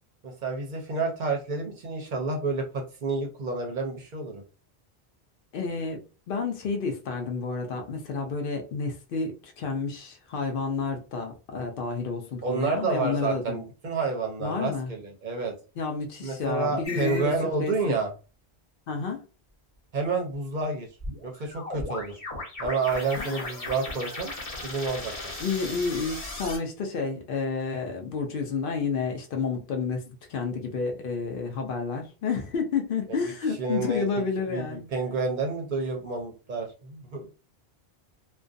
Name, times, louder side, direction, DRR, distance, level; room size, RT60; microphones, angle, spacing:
voice 1, 0.2-4.4 12.4-15.5 16.2-18.1 19.9-20.9 21.2-22.2 22.6-24.3 24.6-25.1 33.1-33.2 33.6-34.1 34.5-37.3, right 4 dB, 55° right, 0.6 m, -29 dB
voice 2, 5.5-6.0 6.3-13.6 14.4-14.9 15.8-17.3 17.6-18.0 18.9-19.2 23.2-23.5 25.4-34.9, left 4 dB, 65° left, 0.7 m, -30 dB
sound 1, 16.8-17.3 21.0-26.6, left 2 dB, 40° left, 0.9 m, -37 dB
2.4 x 2.2 x 2.4 m
omnidirectional pair, 1.1 m